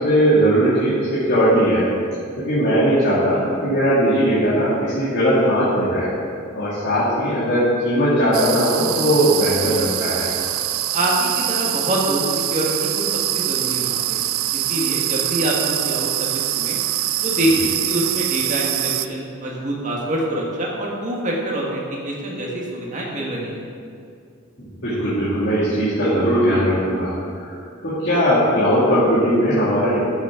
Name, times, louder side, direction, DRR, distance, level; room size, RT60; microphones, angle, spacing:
voice 1, 0.0-1.9 2.4-6.1 6.5-10.3 17.5-17.6 24.6-30.0, equal, 55° left, -12 dB, 2.3 m, -19 dB
sound 1, 8.3-19.1, right 14 dB, 80° right, 0.4 m, -24 dB
voice 2, 10.9-12.2 12.5-13.0 13.3-14.2 14.5-16.8 17.2-23.6, right 1 dB, 35° right, -3 dB, 1.7 m, -25 dB
13.5 x 7.2 x 3.8 m, 2.4 s
head